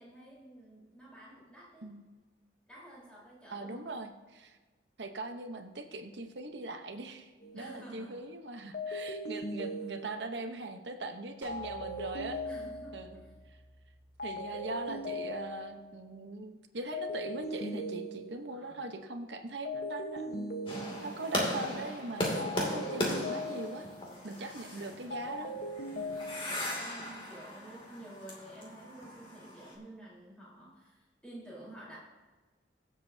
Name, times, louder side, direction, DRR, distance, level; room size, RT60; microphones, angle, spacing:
voice 1, 0.0-1.9 2.7-3.9 7.5-8.3 10.6-10.8 12.4-13.3 18.5-18.8 23.7-25.5 25.9-26.3 26.6-32.0, right 1 dB, 5° left, -7 dB, 4.0 m, -51 dB
voice 2, 3.5-4.6 5.0-12.4 12.9-13.2 13.5-13.6 14.2-20.5 21.0-23.9 24.2-25.5 26.0-26.1, right 2 dB, 65° right, 6 dB, 1.0 m, -41 dB
sound 1, 7.4-7.7 8.7-10.5 11.5-13.2 14.2-15.9 16.9-18.6 19.7-21.4 22.4-24.1 25.1-26.5, left 1 dB, 55° left, 1.1 m, -39 dB
sound 2, 11.4-15.8, equal, 10° right, 2.3 m, -55 dB
sound 3, 20.7-29.7, left 1 dB, 25° left, 2.5 m, -37 dB
22.5 x 7.6 x 2.8 m, 1.3 s
head